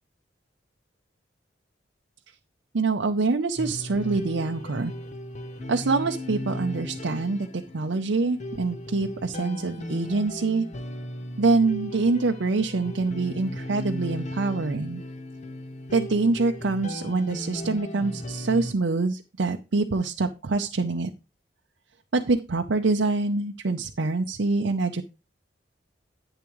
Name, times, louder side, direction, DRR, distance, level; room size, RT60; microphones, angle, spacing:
voice 1, 2.7-4.9 5.7-10.7 11.4-15.0 15.9-21.1 22.1-25.0, right 3 dB, 75° right, 4 dB, 0.6 m, -25 dB
sound 1, 3.6-18.7, left 1 dB, 40° left, 0.9 m, -36 dB
10.5 x 9.0 x 3.1 m, 0.29 s
head